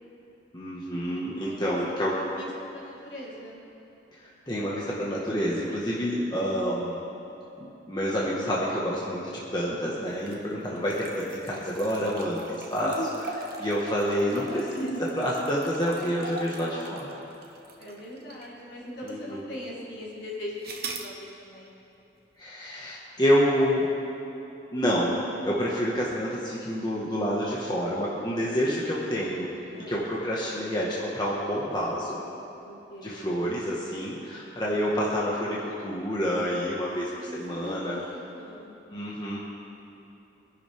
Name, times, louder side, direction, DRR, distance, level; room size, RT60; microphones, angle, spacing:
voice 1, 0.5-2.2 4.5-7.0 7.6-12.9 13.6-17.1 19.0-19.5 22.4-23.9 24.7-29.5 29.9-32.2 33.0-38.0 38.9-39.4, equal, 25° left, -6 dB, 1.5 m, -28 dB
voice 2, 1.4-3.6 10.6-11.0 12.8-13.2 17.8-21.8 29.7-30.1 32.6-33.3 36.9-37.4 37.6-38.7, left 1 dB, 65° left, -7 dB, 3.9 m, -41 dB
sound 1, 10.1-18.6 19.1-19.2 20.6-21.1, right 3 dB, 55° right, 1.0 m, -41 dB
24.0 x 10.5 x 3.6 m, 2.9 s
head